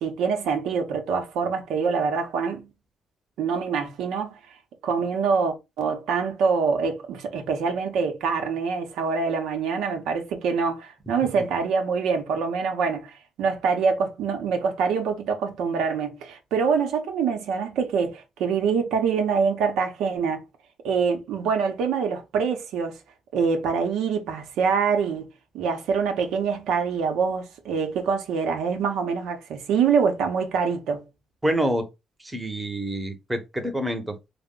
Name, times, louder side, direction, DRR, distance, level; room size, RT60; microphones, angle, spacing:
voice 1, 0.0-2.7 3.4-4.4 4.8-20.4 20.8-23.0 23.3-25.3 25.5-31.0, right 5 dB, 85° right, 0.7 m, -25 dB
voice 2, 31.4-31.8 32.2-34.3, right 1 dB, 10° right, 0.8 m, -27 dB
3.3 x 2.1 x 3.7 m
cardioid pair, 90°, 0 cm